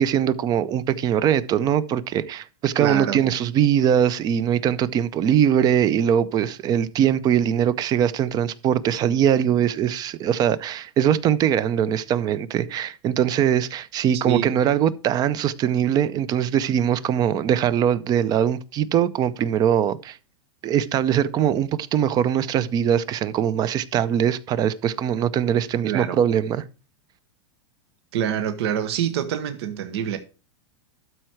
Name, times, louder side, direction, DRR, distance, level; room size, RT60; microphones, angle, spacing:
voice 1, 0.0-20.2 20.6-26.6, right 9 dB, 25° right, 0.5 m, -21 dB
voice 2, 2.8-3.2 14.2-14.5 25.8-26.2 28.1-30.2, right 10 dB, 65° right, 1.0 m, -25 dB
12.5 x 4.6 x 4.5 m
supercardioid pair, 145°, 15 cm